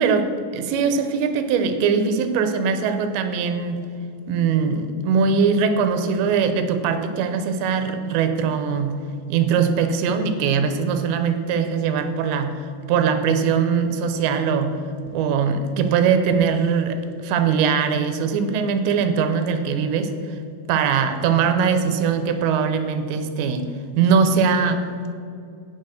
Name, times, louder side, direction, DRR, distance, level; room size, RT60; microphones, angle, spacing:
voice 1, 0.0-3.8 4.3-9.0 9.3-12.6 12.9-14.7 15.1-20.4 20.7-23.7 24.0-24.8, right 6 dB, 80° right, 8 dB, 2.9 m, -21 dB
8.9 x 6.6 x 6.3 m, 2.4 s
omnidirectional pair, 5.2 m